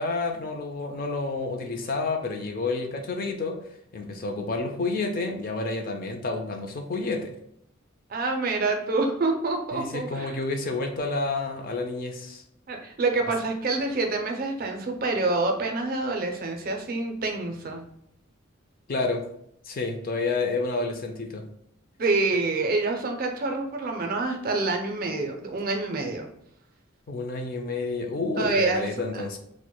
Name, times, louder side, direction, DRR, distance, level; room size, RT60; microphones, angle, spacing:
voice 1, 0.0-7.3 9.7-12.4 18.9-19.3 19.6-21.5 27.1-29.4, left 3 dB, 40° left, 4 dB, 0.4 m, -29 dB
voice 2, 8.1-10.4 12.7-17.8 22.0-26.3 28.4-29.2, right 3 dB, 45° right, 3 dB, 0.4 m, -27 dB
4.4 x 2.1 x 2.2 m, 0.74 s
head